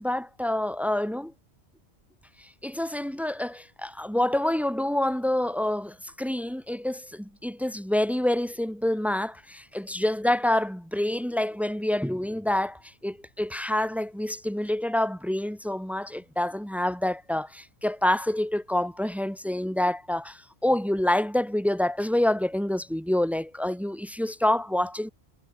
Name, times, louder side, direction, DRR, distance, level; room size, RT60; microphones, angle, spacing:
voice 1, 0.0-1.3 2.4-25.1, left 1 dB, ahead, 0.5 m, -27 dB
omnidirectional pair, 1.1 m